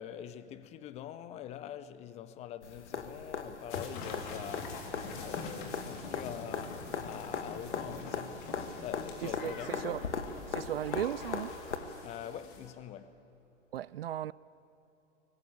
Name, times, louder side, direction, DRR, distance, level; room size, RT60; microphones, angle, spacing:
voice 1, 0.0-4.9 5.2-8.4 8.8-10.0 12.0-13.3, left 10 dB, 20° left, 0.6 m, -44 dB
sound 1, 2.6-11.8 13.8-13.9, left 5 dB, 70° left, 1.8 m, -39 dB
sound 2, 3.7-12.7, left 4 dB, 45° left, 3.5 m, -45 dB
voice 2, 9.2-10.0 10.5-11.5 13.7-14.3, right 12 dB, 55° right, 0.5 m, -36 dB
23.5 x 19.5 x 8.6 m
figure-of-eight pair, 110°, 36 cm